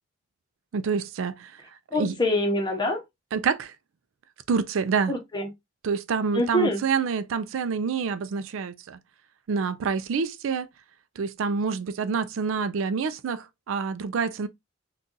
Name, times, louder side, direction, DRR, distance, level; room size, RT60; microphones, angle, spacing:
voice 1, 0.7-1.6 1.9-2.2 3.3-3.7 4.5-5.1 5.8-9.0 9.5-10.7 11.2-14.5, right 5 dB, 70° right, 0.4 m, -27 dB
voice 2, 1.9-3.0 5.1-5.5 6.3-6.8, left 1 dB, 20° left, 0.9 m, -25 dB
2.7 x 2.3 x 3.7 m
head